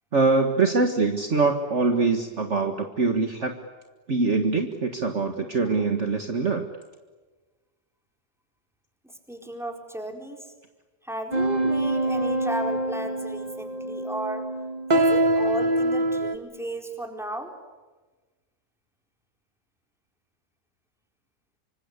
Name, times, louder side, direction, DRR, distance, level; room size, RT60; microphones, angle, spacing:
voice 1, 0.1-3.5 4.1-6.7, right 3 dB, 45° right, 5 dB, 2.0 m, -23 dB
voice 2, 9.0-10.5 11.0-14.5 14.9-17.5, right 1 dB, ahead, 4 dB, 4.2 m, -34 dB
sound 1, 11.3-16.3, right 1 dB, 25° right, 1.3 m, -25 dB
26.0 x 25.5 x 8.3 m, 1.3 s
omnidirectional pair, 1.8 m